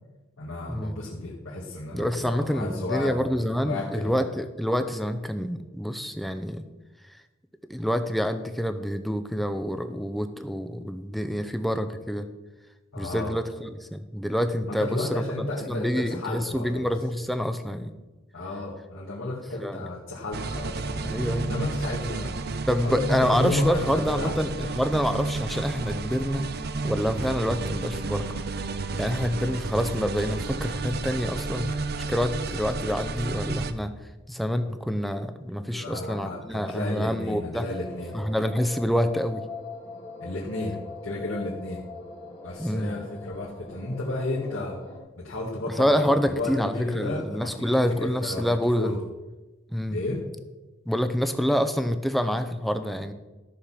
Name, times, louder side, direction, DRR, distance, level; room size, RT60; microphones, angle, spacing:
voice 1, 0.4-3.3 3.6-4.3 12.9-13.4 14.7-16.9 18.3-22.4 22.8-24.7 35.6-38.2 40.2-40.8 41.0-41.8 42.4-44.8 45.2-48.5 48.8-49.0 49.9-50.2, left 2 dB, 75° left, -5 dB, 2.1 m, -32 dB
voice 2, 1.9-6.6 7.7-12.3 13.0-17.9 19.6-19.8 21.0-21.5 22.7-26.4 26.8-28.5 28.9-31.7 32.1-33.9 34.3-37.6 38.1-39.4 42.6-42.9 45.8-49.0 49.7-50.0 50.9-53.1, equal, ahead, 9 dB, 0.6 m, -27 dB
sound 1, 20.3-33.7, right 3 dB, 50° right, 0.6 m, -32 dB
sound 2, 37.7-45.0, left 3 dB, 25° left, 1.9 m, -42 dB
13.5 x 6.6 x 5.8 m, 1.2 s
head